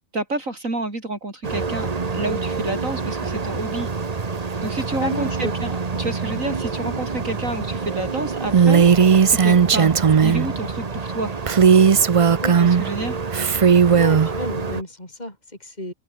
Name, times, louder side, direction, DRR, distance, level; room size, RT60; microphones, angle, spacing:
voice 1, 0.1-3.9 4.6-9.0 9.3-9.9 10.2-11.3 12.6-13.2, right 2 dB, 75° right, 5.8 m, -29 dB
sound 1, 1.4-14.8, right 4 dB, 30° right, 1.2 m, -28 dB
voice 2, 5.0-5.5 5.9-6.0 12.4-12.6 14.0-15.9, left 1 dB, 30° left, 6.8 m, -31 dB
Female speech woman speaking, 8.5-10.5 11.5-12.9 13.3-14.3, right 6 dB, 55° right, 0.3 m, -15 dB
omnidirectional pair, 1.4 m